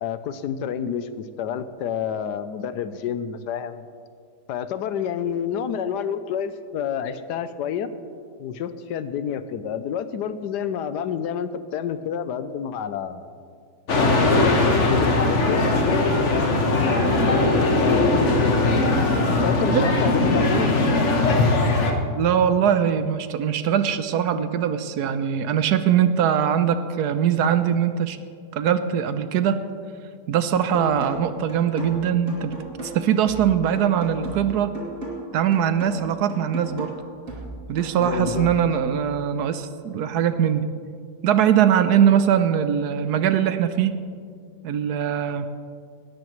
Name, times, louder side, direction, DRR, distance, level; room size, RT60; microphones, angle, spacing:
voice 1, 0.0-3.8 4.5-7.9 8.4-13.2 13.9-17.2 17.8-18.9 19.3-21.1 38.0-38.5, left 8 dB, 80° left, 12 dB, 1.3 m, -29 dB
sound 1, 13.9-21.9, left 2 dB, 45° left, 1.4 m, -20 dB
voice 2, 22.1-28.2 28.5-29.6 30.3-32.5 32.8-34.7 35.3-36.9 37.7-40.6 41.2-43.9 44.6-45.5, right 9 dB, 75° right, 11 dB, 1.2 m, -21 dB
sound 2, 30.7-38.7, right 2 dB, 50° right, 3.0 m, -36 dB
18.0 x 13.0 x 3.1 m, 2.1 s
omnidirectional pair, 1.8 m